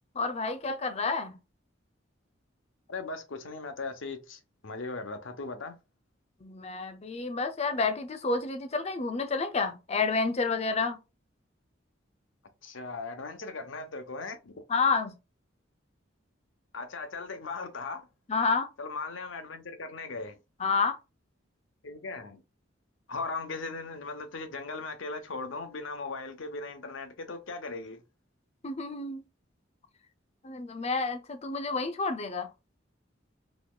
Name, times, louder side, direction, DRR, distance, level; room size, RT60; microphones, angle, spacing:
voice 1, 0.1-1.4 6.4-11.0 14.7-15.2 18.3-18.7 20.6-21.0 28.6-29.2 30.4-32.5, left 4 dB, 35° left, 0.6 m, -29 dB
voice 2, 2.9-5.8 12.6-14.6 16.7-18.1 18.8-20.4 21.8-22.4 23.1-28.0, left 3 dB, 90° left, 0.8 m, -38 dB
4.1 x 3.0 x 2.3 m
head